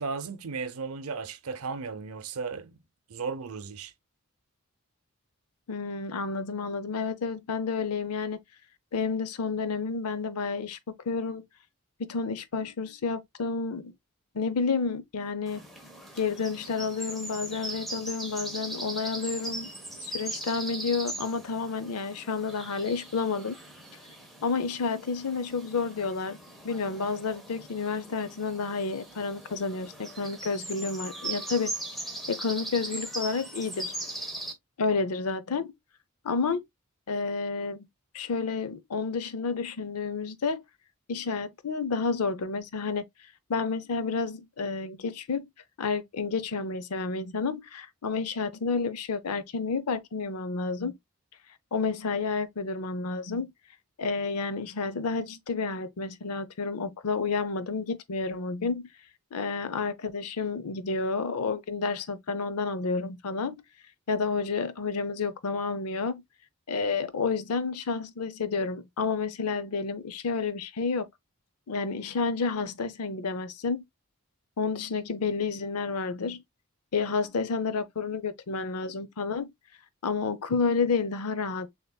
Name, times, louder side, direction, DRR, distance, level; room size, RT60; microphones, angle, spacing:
voice 1, 0.0-2.8 3.1-3.9, right 5 dB, 75° right, 0.7 m, -35 dB
voice 2, 5.7-8.4 8.9-10.8 11.1-11.4 12.0-13.9 14.3-15.6 16.2-19.7 20.0-23.6 24.4-26.4 26.6-31.7 32.3-33.9 34.8-35.7 36.2-36.6 37.1-37.9 38.1-40.6 41.1-43.0 43.5-45.5 45.8-51.0 51.7-53.5 54.0-58.9 59.3-63.6 64.1-66.2 66.7-71.1 71.7-73.8 74.6-76.4 76.9-79.5 80.0-81.7, left 4 dB, 85° left, 0.6 m, -30 dB
sound 1, 15.5-34.5, right 2 dB, ahead, 1.1 m, -39 dB
6.5 x 2.9 x 2.2 m
head